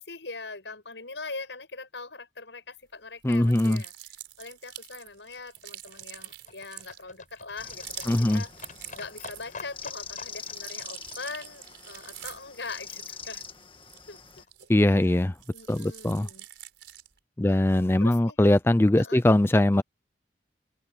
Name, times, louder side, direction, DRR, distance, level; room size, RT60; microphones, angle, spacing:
voice 1, 0.0-8.5 8.9-13.4 14.1-14.5 14.9-15.1 15.5-16.5 17.4-17.6 18.0-18.4 18.9-19.2, left 3 dB, 80° left, 6.7 m, -42 dB
voice 2, 3.2-3.8 8.1-8.4 14.7-15.3 15.7-16.3 17.4-19.8, left 1 dB, 15° left, 0.4 m, -21 dB
sound 1, 3.2-9.7 10.1-15.0 15.3-17.2, right 13 dB, 80° right, 4.2 m, -46 dB
Livestock farm animals working animals, 4.8-13.0 13.2-13.3 13.6-13.7 13.9-14.0 14.2-14.3 14.5-14.6 14.8-14.9 15.1-15.2 15.4-15.5, left 4 dB, 45° left, 7.2 m, -48 dB
sound 2, 7.6-14.4, left 6 dB, 30° left, 1.7 m, -43 dB
head